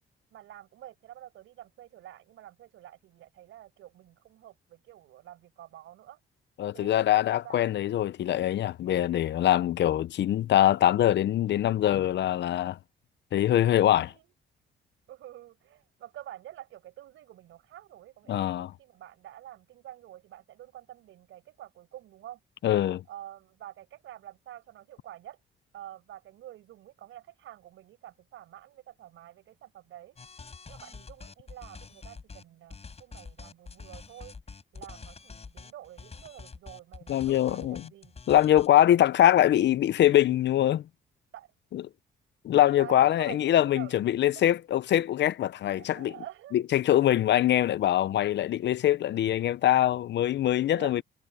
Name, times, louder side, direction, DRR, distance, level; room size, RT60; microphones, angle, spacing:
voice 1, 0.3-6.2 6.7-7.7 13.8-14.3 15.1-22.4 23.1-25.4 25.7-30.2 30.7-34.3 34.7-38.2 41.3-41.5 42.6-44.0 44.3-44.4 45.8-46.6 50.7-51.0, right 13 dB, 80° right, 6.4 m, -48 dB
voice 2, 6.6-12.8 13.3-14.1 18.3-18.7 22.6-23.0 37.1-37.8 38.3-40.8 41.7-41.8 42.4-46.1 46.5-51.0, left 12 dB, 65° left, 0.6 m, -23 dB
sound 1, 30.2-32.4 32.7-38.7, left 4 dB, 30° left, 4.4 m, -46 dB
cardioid pair, 90°, 20 cm